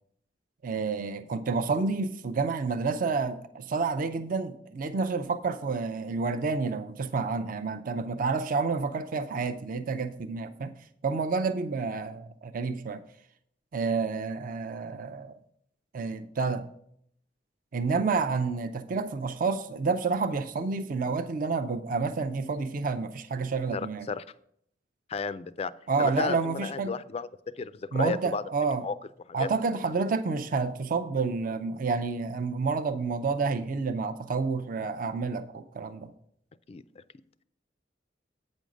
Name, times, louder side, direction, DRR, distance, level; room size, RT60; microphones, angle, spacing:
voice 1, 0.6-10.7 11.0-13.0 13.7-15.4 15.9-16.7 17.7-24.1 25.9-27.0 27.9-28.9 29.3-36.1, right 4 dB, 50° right, 0.5 m, -29 dB
voice 2, 23.7-24.2 25.1-25.7 26.0-27.3 27.6-28.4 28.8-28.9 29.4-29.5 36.7-37.0, left 5 dB, 35° left, 0.3 m, -33 dB
8.5 x 5.2 x 6.2 m
head